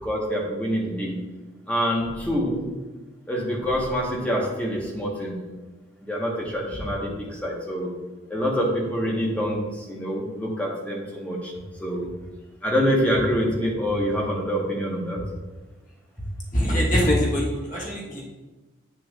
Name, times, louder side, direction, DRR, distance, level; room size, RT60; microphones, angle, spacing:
voice 1, 0.0-1.2 1.7-2.7 3.3-5.4 6.0-7.9 8.3-11.5 11.8-12.1 12.6-15.2, equal, 5° left, -3 dB, 1.2 m, -26 dB
voice 2, 16.5-18.2, equal, 40° left, -4 dB, 1.5 m, -23 dB
8.2 x 6.4 x 2.4 m, 1.2 s
head